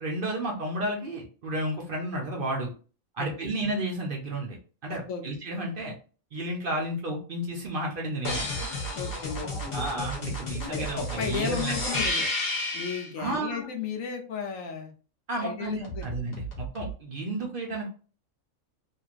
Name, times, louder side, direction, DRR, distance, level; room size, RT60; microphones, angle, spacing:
voice 1, 0.0-2.7 3.1-4.6 4.8-5.9 6.3-8.5 9.7-11.7 13.2-13.7 15.3-17.9, right 1 dB, 55° right, 0 dB, 0.7 m, -32 dB
voice 2, 3.2-3.5 4.9-5.2 8.9-10.1 10.7-12.3 12.7-14.9 15.4-16.1, left 6 dB, 80° left, 4 dB, 1.1 m, -35 dB
sound 1, 8.2-13.1 15.8-16.9, left 1 dB, 50° left, 1.0 m, -32 dB
3.0 x 2.5 x 2.4 m, 0.37 s
omnidirectional pair, 1.4 m